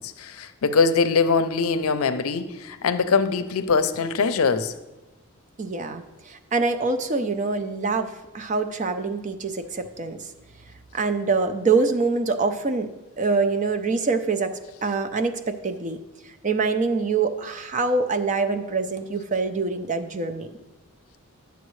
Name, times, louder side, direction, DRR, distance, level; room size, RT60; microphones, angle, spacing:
voice 1, 0.0-4.7, left 5 dB, 70° left, 11 dB, 0.5 m, -22 dB
voice 2, 5.6-10.2 10.9-12.9 13.2-16.0 16.4-20.5, right 4 dB, 35° right, 7 dB, 0.5 m, -25 dB
10.5 x 6.9 x 3.1 m, 1.1 s
head